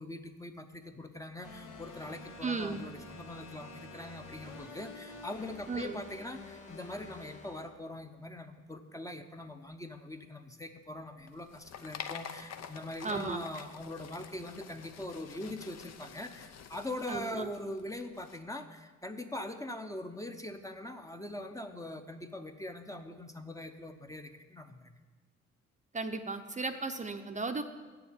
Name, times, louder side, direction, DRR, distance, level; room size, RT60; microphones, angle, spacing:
voice 1, 0.0-25.0, left 1 dB, 10° left, 6 dB, 0.7 m, -42 dB
sound 1, 1.4-7.7, left 3 dB, 85° left, 1.8 m, -49 dB
voice 2, 2.4-2.8 5.7-5.9 13.0-13.4 17.1-17.5 25.9-27.6, right 3 dB, 25° right, 7 dB, 0.6 m, -35 dB
sound 2, 11.2-18.4, left 8 dB, 60° left, 0.7 m, -48 dB
8.1 x 7.0 x 8.3 m, 1.3 s
cardioid pair, 90°, 30 cm